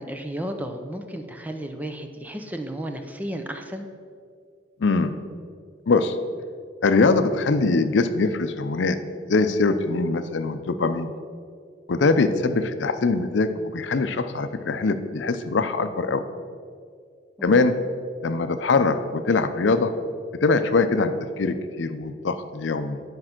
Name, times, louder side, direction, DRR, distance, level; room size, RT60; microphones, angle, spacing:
voice 1, 0.0-3.9 17.4-17.6, right 1 dB, 10° right, 5 dB, 0.6 m, -33 dB
voice 2, 4.8-5.2 5.9-6.2 6.8-9.0 9.3-11.1 11.9-16.2 17.4-17.8 18.2-19.9 20.4-23.0, left 3 dB, 85° left, 10 dB, 0.5 m, -22 dB
10.0 x 5.4 x 5.9 m, 2.1 s
head